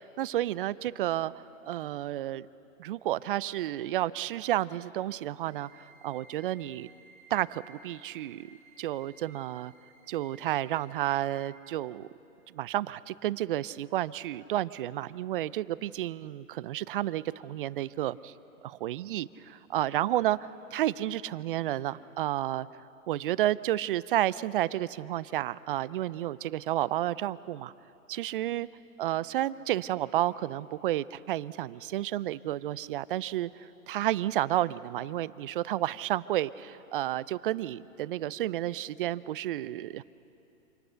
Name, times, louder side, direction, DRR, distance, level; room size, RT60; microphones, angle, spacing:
voice 1, 0.2-1.3 1.6-2.5 2.8-6.9 7.3-8.5 8.8-9.7 10.1-12.1 12.5-18.3 18.6-22.7 23.1-27.7 28.1-28.7 29.0-40.0, right 14 dB, 40° right, 18 dB, 0.5 m, -31 dB
sound 1, 5.5-11.5, right 4 dB, 5° right, 4.0 m, -58 dB
27.5 x 26.5 x 5.7 m, 2.8 s
hypercardioid pair, 125°, 42 cm